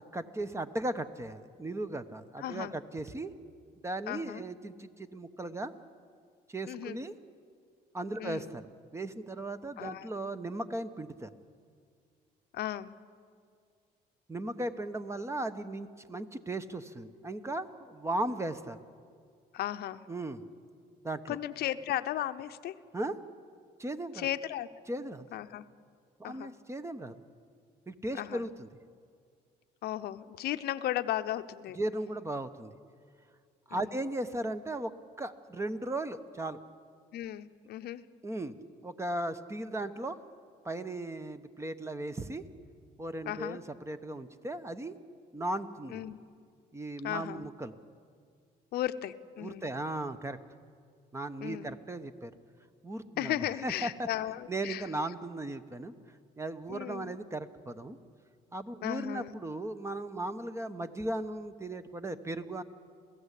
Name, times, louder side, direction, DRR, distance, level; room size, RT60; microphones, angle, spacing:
voice 1, 0.0-3.3 3.8-5.7 6.5-7.2 7.9-8.6 8.9-11.3 14.3-18.8 20.1-20.4 21.0-21.4 22.9-23.2 23.8-24.3 24.9-25.3 26.2-27.2 27.9-28.7 31.7-32.8 33.7-34.9 35.2-36.6 38.2-38.5 38.8-40.2 40.6-42.4 43.0-45.0 45.3-46.0 46.7-47.7 49.4-50.4 51.1-52.3 52.8-54.1 54.5-55.9 56.4-58.0 58.5-62.6, right 1 dB, 15° right, 10 dB, 1.1 m, -37 dB
voice 2, 2.4-2.7 4.1-4.4 6.7-7.0 8.2-8.5 9.8-10.1 12.5-13.0 19.5-20.0 21.3-22.8 24.1-24.7 25.3-25.6 26.2-26.5 28.1-28.4 29.8-31.8 33.7-33.8 37.1-38.0 43.3-43.6 45.9-46.2 47.0-47.5 48.7-49.7 51.4-51.7 53.2-54.9 56.7-57.2 58.8-59.3, left 12 dB, 70° left, 11 dB, 0.9 m, -35 dB
28.0 x 16.5 x 8.4 m, 2.1 s
cardioid pair, 110°, 17 cm